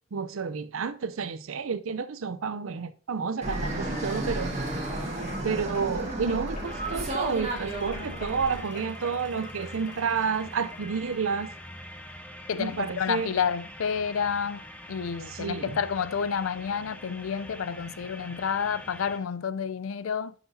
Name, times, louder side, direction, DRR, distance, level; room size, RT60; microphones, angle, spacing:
voice 1, 0.1-4.5 5.4-11.5 12.6-13.3 15.3-15.8, right 5 dB, 90° right, 0.6 m, -30 dB
Fixed-wing aircraft airplane, 3.4-8.6, right 1 dB, 35° right, 1.7 m, -33 dB
sound 1, 5.0-11.6 12.1-12.2, right 1 dB, 40° left, 2.0 m, -43 dB
sound 2, 6.6-19.2, equal, 5° left, 0.7 m, -44 dB
voice 2, 12.5-14.6 14.9-20.3, left 7 dB, 85° left, 0.4 m, -29 dB
11.0 x 5.9 x 2.7 m
head